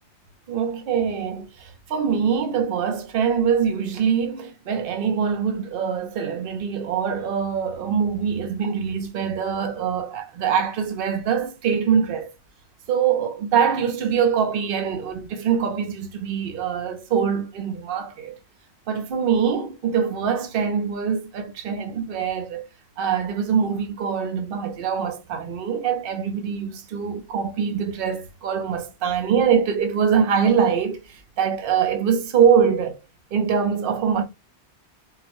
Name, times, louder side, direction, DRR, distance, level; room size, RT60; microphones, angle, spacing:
voice 1, 0.5-12.3 12.9-18.4 18.9-22.7 23.0-33.0 33.3-34.2, right 7 dB, 60° right, 0.8 m, -23 dB
3.8 x 2.1 x 3.0 m
omnidirectional pair, 1.1 m